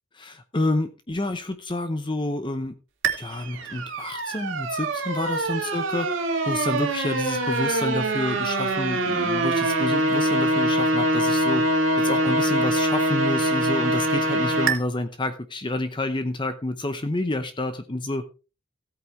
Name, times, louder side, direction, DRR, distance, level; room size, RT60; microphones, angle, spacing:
voice 1, 0.1-2.8 3.2-6.1 6.4-11.7 12.0-18.3, left 2 dB, 25° left, 9 dB, 0.7 m, -29 dB
sound 1, 3.0-14.8, right 1 dB, 60° right, 2.2 m, -24 dB
15.5 x 8.7 x 3.2 m, 0.33 s
head